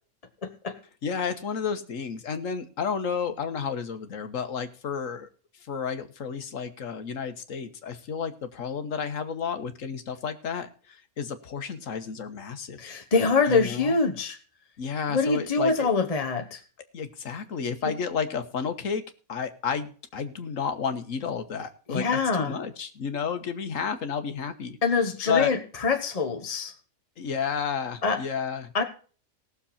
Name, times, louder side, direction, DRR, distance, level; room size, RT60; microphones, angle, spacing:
voice 1, 0.4-0.8 12.8-14.4 15.1-16.6 21.9-22.5 24.8-26.7 28.0-28.2 28.7-28.8, left 4 dB, 30° left, 5 dB, 1.1 m, -25 dB
voice 2, 1.0-5.3 5.7-12.9 13.5-14.0 14.8-15.9 16.9-19.0 19.3-24.8 25.3-25.5 27.2-28.7, left 6 dB, 65° left, 9 dB, 1.6 m, -31 dB
19.0 x 7.0 x 4.2 m, 0.40 s
omnidirectional pair, 1.5 m